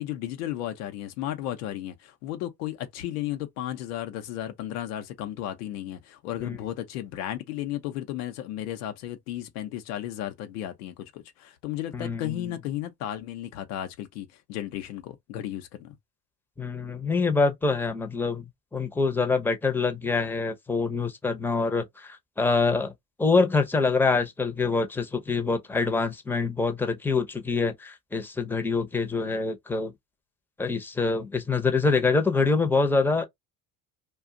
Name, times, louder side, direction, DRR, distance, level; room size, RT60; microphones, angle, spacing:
voice 1, 0.0-15.9, left 12 dB, 80° left, 0.8 m, -34 dB
voice 2, 11.9-12.5 16.6-18.5 18.7-22.9 23.2-29.9 30.6-33.2, left 4 dB, 5° left, 0.7 m, -25 dB
2.4 x 2.3 x 3.7 m
hypercardioid pair, 75°, 45 cm